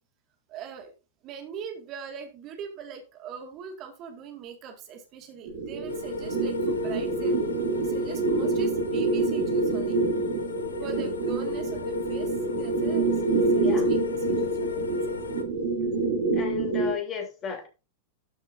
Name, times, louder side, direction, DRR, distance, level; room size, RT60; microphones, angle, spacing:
voice 1, 0.5-0.9 1.2-10.0 10.8-14.0 14.3-15.1, right 7 dB, 35° right, 4 dB, 2.0 m, -41 dB
sound 1, 5.5-16.9, right 3 dB, 55° right, 2.6 m, -27 dB
sound 2, 5.9-15.4, left 6 dB, 70° left, 1.0 m, -35 dB
voice 2, 16.3-17.7, left 7 dB, 30° left, 2 dB, 3.2 m, -34 dB
12.5 x 6.5 x 2.6 m, 0.31 s
figure-of-eight pair, 90°, 0 cm